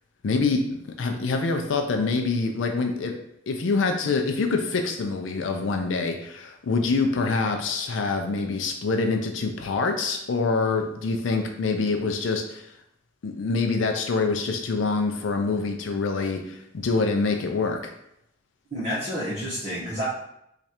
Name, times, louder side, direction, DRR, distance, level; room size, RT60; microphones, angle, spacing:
voice 1, 0.2-3.1 3.5-12.7 13.2-17.9, left 4 dB, 85° left, 4 dB, 0.4 m, -25 dB
voice 2, 18.7-20.0, equal, 40° right, -9 dB, 1.1 m, -29 dB
3.1 x 2.5 x 4.3 m, 0.78 s
head